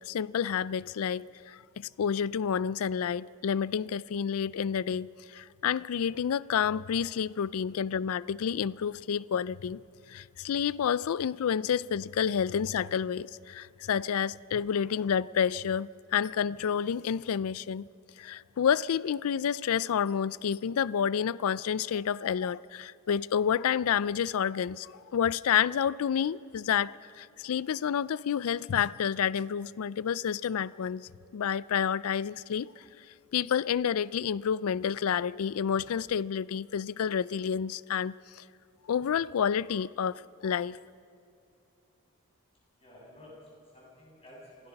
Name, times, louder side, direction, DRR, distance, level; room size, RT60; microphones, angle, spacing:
voice 1, 0.1-5.1 5.3-9.8 10.1-17.9 18.2-32.7 33.3-38.4 38.9-40.8, left 8 dB, 70° left, 0.4 m, -29 dB
voice 2, 42.8-44.7, left 1 dB, 25° left, 6.8 m, -52 dB
26.5 x 17.0 x 5.8 m
head